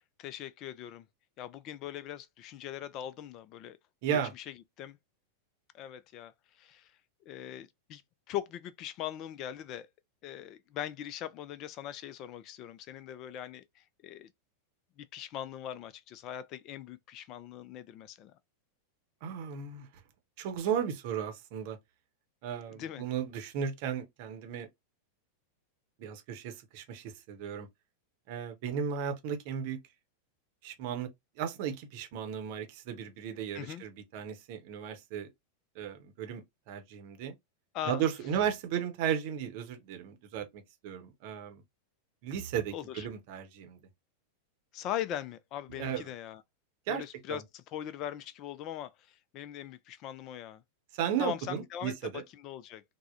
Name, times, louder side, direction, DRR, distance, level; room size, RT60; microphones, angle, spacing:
voice 1, 0.2-1.0 1.4-3.8 4.1-4.5 4.8-5.0 5.7-6.3 6.6-6.9 7.3-8.0 8.3-9.9 10.2-14.3 15.0-18.3 22.7-23.0 33.5-33.8 37.7-38.0 42.7-43.1 44.7-46.4 46.9-50.6 51.2-51.9 52.4-52.8, left 11 dB, 40° left, 0.3 m, -40 dB
voice 2, 4.0-4.3 19.2-19.9 20.4-21.8 22.4-24.7 26.0-27.7 28.3-29.8 30.6-31.1 31.4-35.3 35.7-37.3 37.9-41.6 42.2-43.8 45.8-46.1 46.9-47.0 47.3-47.4 50.9-52.2, right 8 dB, 45° right, 0.8 m, -35 dB
3.4 x 2.1 x 2.4 m
figure-of-eight pair, 90°, 0 cm